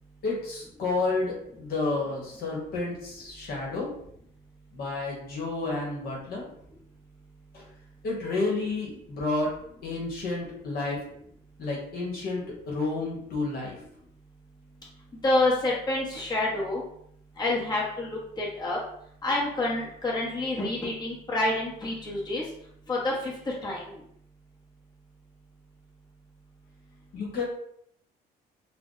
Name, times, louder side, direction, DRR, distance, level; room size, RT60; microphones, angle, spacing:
voice 1, 0.2-3.9 4.7-6.4 7.5-7.6 8.0-9.5 9.8-11.0 11.6-13.8 27.1-27.4, left 3 dB, 65° left, -2 dB, 1.1 m, -30 dB
voice 2, 15.2-16.8 17.4-18.8 19.2-22.4 22.9-24.0, left 2 dB, 25° left, -5 dB, 1.0 m, -28 dB
2.5 x 2.2 x 3.9 m, 0.70 s
cardioid pair, 110°, 17 cm